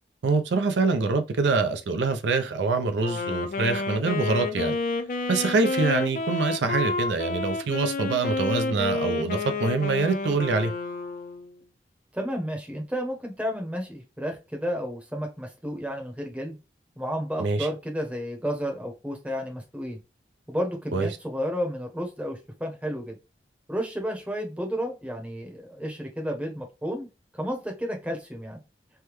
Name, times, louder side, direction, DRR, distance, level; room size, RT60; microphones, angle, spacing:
voice 1, 0.2-4.8 5.3-10.7 17.4-17.7 20.9-21.1, right 4 dB, 80° right, 0.5 m, -25 dB
Wind instrument woodwind instrument, 3.0-11.6, left 3 dB, 50° left, 0.4 m, -30 dB
voice 2, 12.1-16.6 17.0-20.0 20.5-23.2 23.7-27.1 27.3-28.6, equal, 10° right, 0.7 m, -32 dB
3.4 x 2.2 x 3.0 m
head